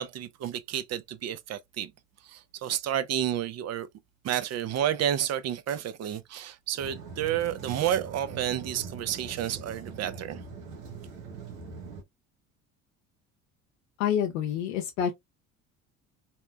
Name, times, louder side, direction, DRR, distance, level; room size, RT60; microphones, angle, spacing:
voice 1, 0.0-1.9 2.2-3.9 4.2-10.4, right 10 dB, 45° right, 0.5 m, -30 dB
sound 1, 6.8-12.0, right 5 dB, 85° right, 0.9 m, -42 dB
voice 2, 14.0-15.1, left 9 dB, 85° left, 0.6 m, -27 dB
2.9 x 2.1 x 2.3 m
hypercardioid pair, 70°, 38 cm